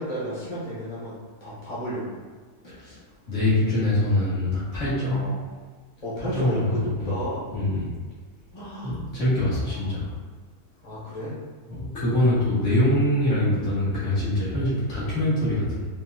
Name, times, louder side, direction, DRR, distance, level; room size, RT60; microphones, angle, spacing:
voice 1, 0.0-2.2 5.1-5.4 6.0-7.5 8.5-9.0 9.6-10.2 10.8-11.3 13.8-14.2, equal, 25° left, -8 dB, 1.3 m, -33 dB
voice 2, 2.6-3.0 3.3-5.2 6.3-7.1 7.5-7.9 8.8-10.1 11.7-15.9, left 1 dB, 50° left, -10 dB, 1.8 m, -24 dB
4.4 x 4.1 x 2.4 m, 1.4 s
omnidirectional pair, 1.7 m